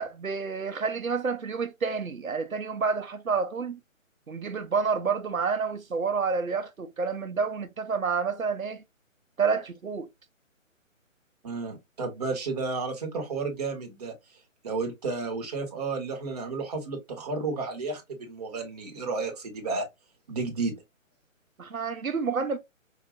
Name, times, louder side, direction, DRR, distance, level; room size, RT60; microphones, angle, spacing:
voice 1, 0.0-3.8 4.3-8.8 9.4-10.1 21.6-22.6, right 5 dB, 85° right, 0.7 m, -29 dB
voice 2, 11.4-14.1 14.6-19.9 20.3-20.7, right 4 dB, 30° right, 1.2 m, -32 dB
4.9 x 2.5 x 2.4 m
figure-of-eight pair, 145°, 40 cm